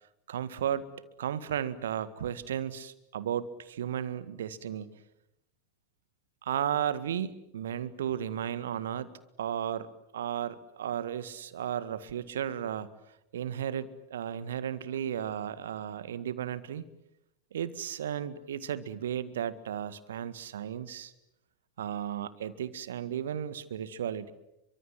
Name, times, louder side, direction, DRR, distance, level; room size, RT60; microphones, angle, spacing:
voice 1, 0.3-0.9 1.2-5.0 6.4-9.1 9.4-9.9 10.1-12.9 13.3-16.8 17.5-21.1 21.8-24.3, right 9 dB, 60° right, 15 dB, 1.8 m, -34 dB
30.0 x 24.5 x 7.8 m, 0.86 s
figure-of-eight pair, 90°, 0 cm